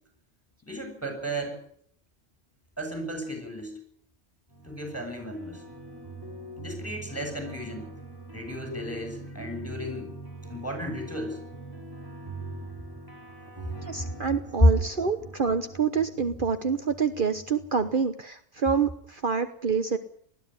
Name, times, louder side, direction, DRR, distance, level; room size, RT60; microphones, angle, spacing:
voice 1, 0.6-1.6 2.8-3.8 4.6-5.6 6.6-7.9 8.3-10.1 10.5-11.4 14.6-14.7, equal, 10° left, 4 dB, 8.0 m, -30 dB
sound 1, 4.5-17.9, right 3 dB, 20° right, 4.4 m, -43 dB
voice 2, 13.8-20.0, right 5 dB, 50° right, 9 dB, 1.3 m, -27 dB
20.0 x 14.0 x 9.9 m, 0.64 s
omnidirectional pair, 1.1 m